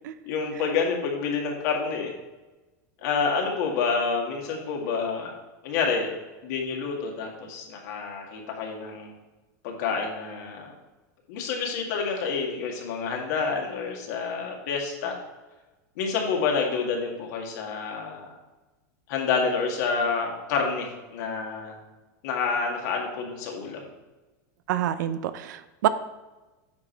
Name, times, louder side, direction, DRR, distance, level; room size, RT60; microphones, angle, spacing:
voice 1, 0.2-2.1 3.0-5.3 5.6-6.1 6.4-9.2 9.6-10.7 11.3-15.1 16.0-18.3 19.1-21.8 22.2-23.9, left 5 dB, 65° left, 1 dB, 2.0 m, -28 dB
voice 2, 24.7-25.9, right 12 dB, 80° right, 13 dB, 0.6 m, -27 dB
8.4 x 5.0 x 4.5 m, 1.1 s
supercardioid pair, 135°, 10 cm